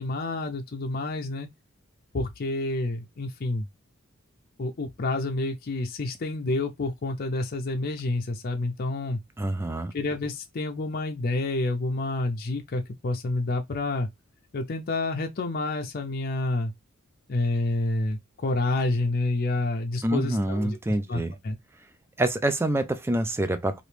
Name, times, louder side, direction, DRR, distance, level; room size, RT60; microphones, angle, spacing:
voice 1, 0.0-1.5 2.1-3.7 4.6-9.2 9.9-14.1 14.5-16.7 17.3-20.8 21.1-21.6, left 2 dB, 45° left, 0.5 m, -28 dB
voice 2, 9.4-9.9 20.0-21.4 22.2-23.8, right 1 dB, 10° right, 0.4 m, -26 dB
2.9 x 2.5 x 3.2 m
head